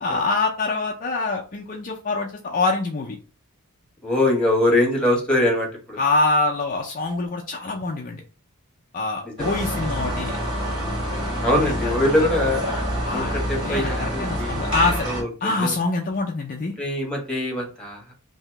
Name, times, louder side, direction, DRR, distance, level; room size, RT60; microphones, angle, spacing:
voice 1, 0.0-3.2 6.0-8.2 8.9-10.4 11.5-12.3 13.0-15.1 15.4-16.7, left 3 dB, 35° left, 0 dB, 0.4 m, -25 dB
voice 2, 4.0-6.0 9.4-9.5 11.4-12.7 13.1-14.6 15.1-15.7 16.8-18.1, left 1 dB, 5° left, -1 dB, 1.2 m, -23 dB
sound 1, 9.4-15.2, equal, 20° right, 1.5 m, -27 dB
2.8 x 2.7 x 4.4 m, 0.36 s
head